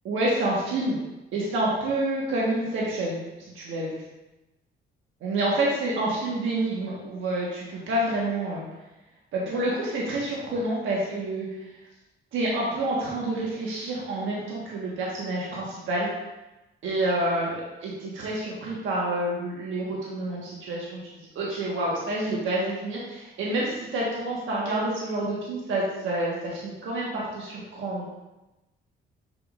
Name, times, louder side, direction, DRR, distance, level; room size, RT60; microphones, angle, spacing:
voice 1, 0.0-1.0 1.3-3.2 3.5-4.0 5.2-8.6 9.3-11.5 12.3-16.1 16.8-28.0, right 1 dB, 80° right, -5 dB, 1.5 m, -28 dB
6.5 x 6.1 x 2.5 m, 1.0 s
cardioid pair, 90°, 20 cm